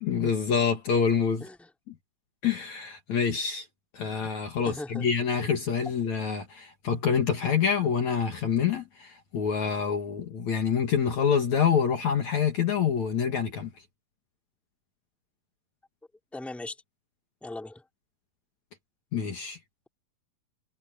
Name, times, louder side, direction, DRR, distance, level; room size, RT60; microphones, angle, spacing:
voice 1, 0.0-1.5 1.9-2.0 2.4-3.7 3.9-13.7 19.1-19.6, left 7 dB, 55° left, 3.0 m, -26 dB
voice 2, 4.7-5.1 16.3-16.8 17.4-17.8, left 2 dB, ahead, 3.5 m, -38 dB
omnidirectional pair, 4.2 m